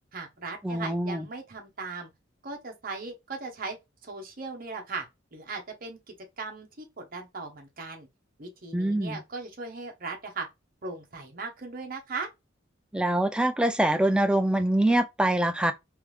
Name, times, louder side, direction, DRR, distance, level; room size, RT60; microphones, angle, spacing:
voice 1, 0.1-2.1 2.4-3.8 4.0-5.1 5.3-6.0 6.4-8.1 8.4-10.5 10.8-12.3, right 4 dB, 50° right, 1.0 m, -38 dB
voice 2, 0.6-1.3 8.7-9.2 12.9-15.7, right 1 dB, 5° right, 0.4 m, -24 dB
3.5 x 3.2 x 3.2 m
head